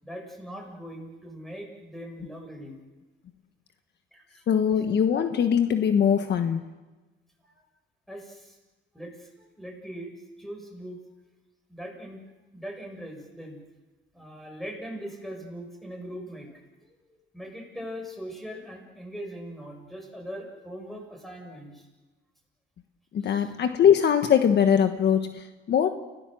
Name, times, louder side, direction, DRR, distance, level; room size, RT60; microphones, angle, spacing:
voice 1, 0.0-2.8 4.1-4.4 8.1-8.6 8.9-10.1 10.4-11.0 11.7-13.6 14.1-21.9 23.2-23.5, equal, ahead, 1 dB, 7.0 m, -41 dB
voice 2, 4.5-6.7 23.1-25.9, left 8 dB, 60° left, 7 dB, 1.4 m, -22 dB
30.0 x 17.0 x 7.8 m, 1.2 s
cardioid pair, 120°, 20 cm